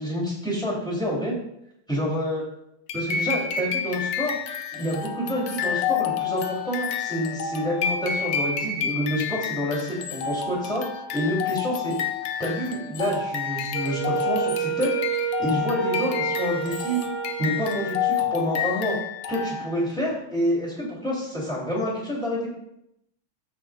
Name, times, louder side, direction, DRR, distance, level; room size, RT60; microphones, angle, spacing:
voice 1, 0.0-1.3 1.9-2.4 2.9-4.4 4.7-10.8 11.1-12.0 12.4-17.0 17.4-19.0 19.3-22.5, equal, ahead, -5 dB, 3.6 m, -28 dB
sound 1, 2.9-19.9, left 7 dB, 65° left, 1.0 m, -29 dB
Wind instrument woodwind instrument, 13.7-18.4, right 9 dB, 60° right, 2.3 m, -30 dB
14.0 x 6.0 x 2.6 m, 0.78 s
omnidirectional pair, 2.3 m